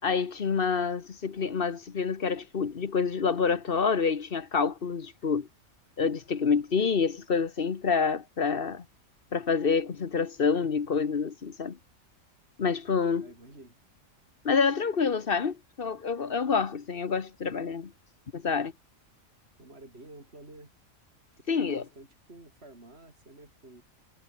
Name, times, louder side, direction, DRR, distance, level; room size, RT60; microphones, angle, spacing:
voice 1, 0.0-5.5 6.0-8.8 9.3-11.8 12.6-13.3 14.4-17.9 18.3-18.7 21.5-21.8, left 5 dB, 45° left, 1.2 m, -27 dB
voice 2, 13.1-13.7 19.6-20.7 21.3-23.8, right 2 dB, 45° right, 5.6 m, -51 dB
omnidirectional pair, 1.4 m